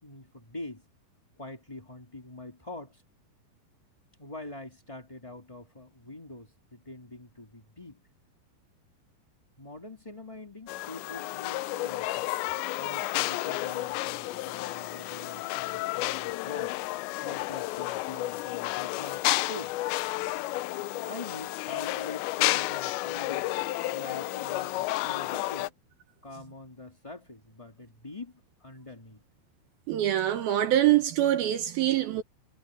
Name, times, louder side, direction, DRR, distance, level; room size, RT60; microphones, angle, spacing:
voice 1, 0.0-0.9 1.4-3.0 4.2-8.0 9.6-12.3 12.8-16.7 17.2-19.8 21.0-23.5 23.9-25.7 26.2-29.2, left 2 dB, 20° left, 0.8 m, -44 dB
sound 1, 10.7-25.7, left 18 dB, 85° left, 2.9 m, -31 dB
voice 2, 29.9-32.2, right 12 dB, 70° right, 2.5 m, -24 dB
omnidirectional pair, 5.1 m